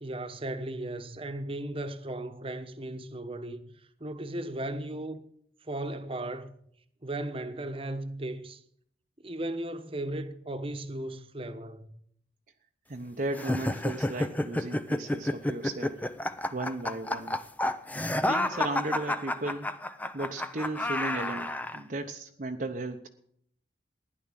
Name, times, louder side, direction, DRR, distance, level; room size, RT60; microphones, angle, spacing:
voice 1, 0.0-3.7 4.0-5.2 5.6-6.5 7.0-8.6 9.2-11.9, right 1 dB, 30° right, 1.2 m, -36 dB
voice 2, 12.9-16.0 16.5-17.4 18.2-19.7 20.1-23.1, right 2 dB, 50° right, 0.9 m, -35 dB
sound 1, 13.3-21.8, left 1 dB, 10° left, 0.6 m, -30 dB
15.5 x 11.0 x 7.6 m
head